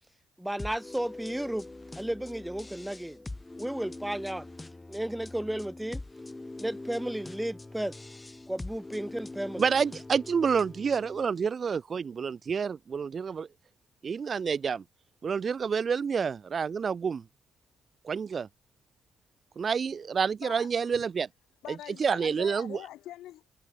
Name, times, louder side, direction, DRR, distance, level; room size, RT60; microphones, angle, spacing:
voice 1, 0.4-1.7 2.0-3.2 3.6-4.5 4.9-6.0 6.6-8.0 8.5-9.7, right 1 dB, 5° right, 2.4 m, -33 dB
sound 1, 0.6-11.3, left 2 dB, 15° left, 2.0 m, -43 dB
voice 2, 9.6-13.5 14.0-14.8 15.2-17.2 18.0-18.5 19.6-21.3 22.0-22.8, right 6 dB, 45° right, 1.3 m, -28 dB
voice 3, 20.4-21.0 21.6-23.5, left 14 dB, 85° left, 3.0 m, -44 dB
cardioid pair, 90°, 0 cm